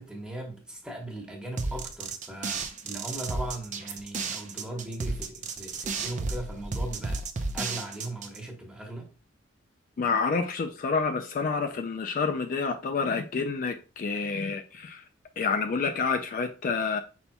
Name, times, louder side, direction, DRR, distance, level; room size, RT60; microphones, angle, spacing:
voice 1, 0.0-7.2 7.5-9.1, right 1 dB, 5° right, 1.1 m, -38 dB
sound 1, 1.6-8.4, right 3 dB, 40° right, 0.6 m, -33 dB
voice 2, 10.0-15.0 15.4-17.0, left 4 dB, 45° left, 0.3 m, -28 dB
5.4 x 4.2 x 2.2 m
head